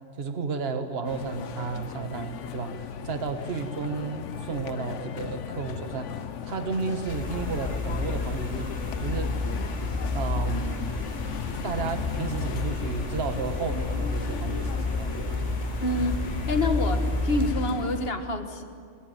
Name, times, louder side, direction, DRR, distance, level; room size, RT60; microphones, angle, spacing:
voice 1, 0.2-2.8 3.0-6.1 6.4-8.7 9.0-9.3 10.1-10.7 11.6-15.5, right 5 dB, 50° right, 7 dB, 1.7 m, -32 dB
sound 1, 1.1-18.1, left 8 dB, 70° left, 1.1 m, -37 dB
sound 2, 7.1-17.5, left 2 dB, 10° right, 7.7 m, -30 dB
voice 2, 15.8-18.6, left 2 dB, 50° left, 6 dB, 1.9 m, -27 dB
22.0 x 21.5 x 9.1 m, 2.2 s
omnidirectional pair, 1.3 m